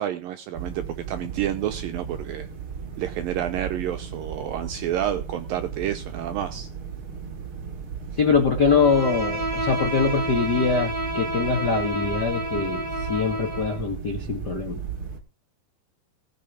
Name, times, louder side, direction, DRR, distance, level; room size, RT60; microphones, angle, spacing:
voice 1, 0.0-2.5 3.0-6.7, right 11 dB, 80° right, 9 dB, 2.1 m, -29 dB
sound 1, 0.5-15.2, right 7 dB, 45° right, 1.9 m, -35 dB
voice 2, 8.2-14.8, left 5 dB, 80° left, 4 dB, 0.9 m, -23 dB
Bowed string instrument, 8.6-13.8, right 1 dB, 10° right, 4.2 m, -30 dB
19.0 x 6.6 x 5.1 m, 0.30 s
omnidirectional pair, 5.0 m